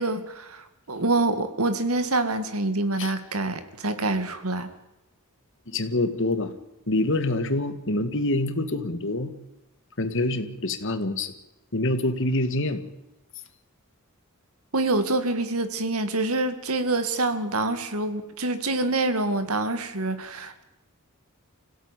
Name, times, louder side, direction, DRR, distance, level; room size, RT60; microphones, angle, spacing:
voice 1, 0.0-4.7 14.7-20.6, right 2 dB, 70° right, 9 dB, 2.3 m, -26 dB
voice 2, 5.7-6.5 6.9-9.3 10.0-11.3 11.7-12.8, left 2 dB, 60° left, 9 dB, 2.1 m, -26 dB
25.5 x 16.5 x 9.2 m, 0.95 s
head